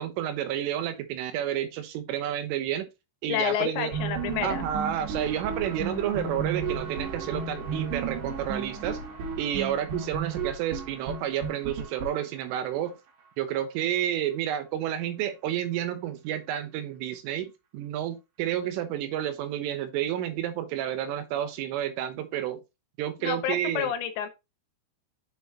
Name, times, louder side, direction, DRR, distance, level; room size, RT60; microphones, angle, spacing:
voice 1, 0.0-2.9 3.2-3.9 4.4-12.9 13.4-22.6 23.0-23.9, right 11 dB, 85° right, 3.6 m, -30 dB
voice 2, 3.3-4.7 23.2-24.3, left 9 dB, 75° left, 3.2 m, -29 dB
sound 1, 3.9-12.7, right 5 dB, 65° right, 3.9 m, -33 dB
7.4 x 7.1 x 2.8 m
omnidirectional pair, 5.6 m